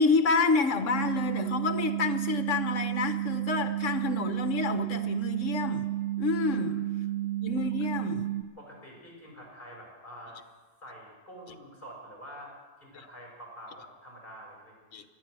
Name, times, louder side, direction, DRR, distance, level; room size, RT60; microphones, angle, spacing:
voice 1, 0.0-5.9 6.2-6.8 7.4-8.3 14.9-15.0, left 4 dB, 55° left, 8 dB, 1.3 m, -28 dB
sound 1, 0.9-8.4, right 14 dB, 60° right, 0.7 m, -31 dB
voice 2, 6.4-6.8 7.7-7.8 8.6-10.4 10.8-12.5 12.8-14.8, equal, 30° left, -2 dB, 5.6 m, -47 dB
24.5 x 8.9 x 6.2 m, 1.5 s
omnidirectional pair, 1.6 m